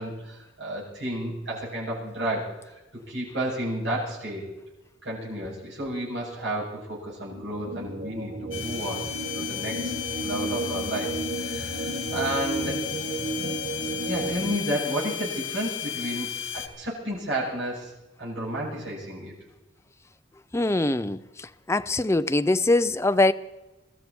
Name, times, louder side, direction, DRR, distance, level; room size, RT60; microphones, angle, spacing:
voice 1, 0.0-4.4 5.0-9.0 9.3-9.9 10.2-13.2 14.1-16.3 16.5-17.9 18.2-19.3, right 1 dB, 65° right, 7.7 m, -32 dB
sound 1, 7.2-14.6, right 2 dB, 80° right, 1.6 m, -33 dB
sound 2, 8.5-16.7, left 10 dB, 85° left, 2.1 m, -34 dB
voice 2, 20.5-21.2 21.7-23.3, left 2 dB, 15° left, 0.5 m, -22 dB
23.5 x 13.5 x 4.4 m
head